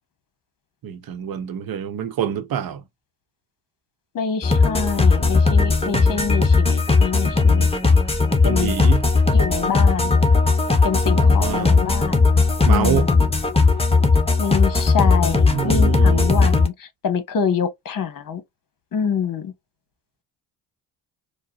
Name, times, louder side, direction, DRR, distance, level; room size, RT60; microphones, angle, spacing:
voice 1, 0.8-2.8 8.4-9.1 11.0-11.8 12.7-13.1 15.3-16.5, right 9 dB, 50° right, 0.9 m, -27 dB
voice 2, 4.1-7.7 8.4-8.8 9.3-10.1 10.8-12.2 12.7-13.3 14.4-16.7 17.0-18.4 18.9-19.5, left 7 dB, 45° left, 1.1 m, -26 dB
sound 1, 4.4-16.7, left 4 dB, 10° left, 1.0 m, -17 dB
4.5 x 2.2 x 2.7 m
hypercardioid pair, 55°, 47 cm